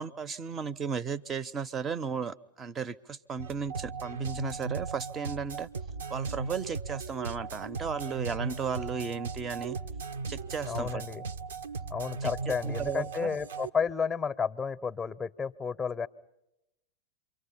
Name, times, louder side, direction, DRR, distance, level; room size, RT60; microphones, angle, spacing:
voice 1, 0.0-5.7 6.1-9.8 10.3-11.0 12.2-13.4, right 6 dB, 20° right, 19 dB, 0.8 m, -35 dB
sound 1, 3.4-13.7, right 4 dB, 65° right, 0.9 m, -37 dB
voice 2, 10.6-11.2 11.9-16.1, left 6 dB, 10° left, 13 dB, 0.8 m, -32 dB
28.0 x 24.0 x 5.7 m, 0.88 s
figure-of-eight pair, 90°, 0 cm